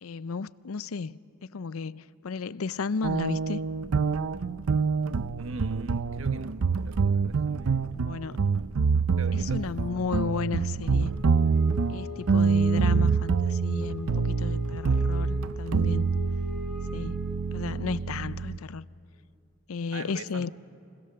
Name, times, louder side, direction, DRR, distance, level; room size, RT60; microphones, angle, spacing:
voice 1, 0.0-3.6 8.0-8.4 9.5-11.1 11.9-16.1 16.9-17.2 17.5-18.9 19.7-20.5, left 5 dB, 80° left, 0.5 m, -33 dB
sound 1, 3.0-18.6, right 5 dB, 90° right, 0.5 m, -26 dB
voice 2, 5.4-6.5 6.8-7.9 9.2-9.7 19.9-20.5, right 3 dB, 70° right, 1.3 m, -42 dB
Wind instrument woodwind instrument, 11.0-17.8, left 1 dB, ahead, 5.5 m, -41 dB
29.5 x 25.5 x 6.8 m
head